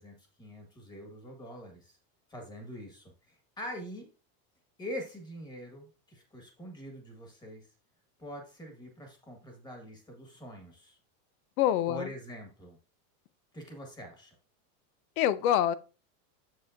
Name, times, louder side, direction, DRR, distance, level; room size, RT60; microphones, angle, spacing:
voice 1, 0.0-2.0 2.3-4.1 4.8-7.6 8.2-11.0 11.9-12.8 13.5-14.3, equal, 10° left, 1.6 m, -44 dB
voice 2, 11.6-12.1 15.2-15.7, left 11 dB, 70° left, 0.7 m, -25 dB
7.6 x 6.8 x 2.6 m
supercardioid pair, 160°, 44 cm